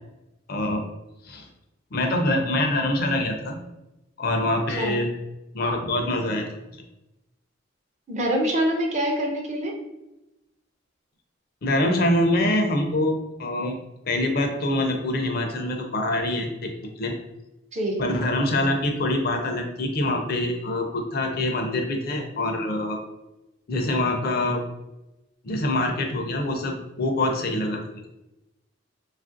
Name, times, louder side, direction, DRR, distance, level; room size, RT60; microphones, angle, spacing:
voice 1, 0.5-0.8 1.2-1.5 1.9-3.6 4.2-5.1 5.5-6.5 6.7-6.8 11.6-13.8 14.1-16.7 17.0-17.1 18.0-23.0 23.7-24.6 25.4-27.8, left 1 dB, 50° left, 3 dB, 0.4 m, -25 dB
voice 2, 8.1-9.8 17.7-18.1, right 1 dB, 35° right, 1 dB, 0.5 m, -25 dB
3.0 x 2.4 x 2.5 m, 0.95 s
head